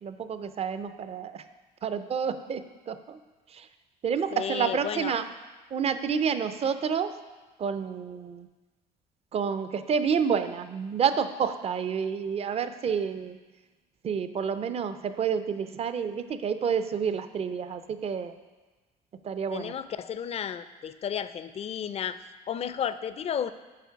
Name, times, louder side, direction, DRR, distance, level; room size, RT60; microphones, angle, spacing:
voice 1, 0.0-1.4 1.8-3.2 3.5-3.7 4.0-5.2 5.7-7.1 7.6-8.5 9.3-13.4 14.0-18.4 19.2-19.7, right 7 dB, 35° right, 11 dB, 0.5 m, -29 dB
voice 2, 4.3-5.2 19.5-22.2 22.5-23.5, left 8 dB, 40° left, 13 dB, 0.4 m, -32 dB
8.4 x 5.0 x 4.6 m, 1.3 s
cardioid pair, 110°, 17 cm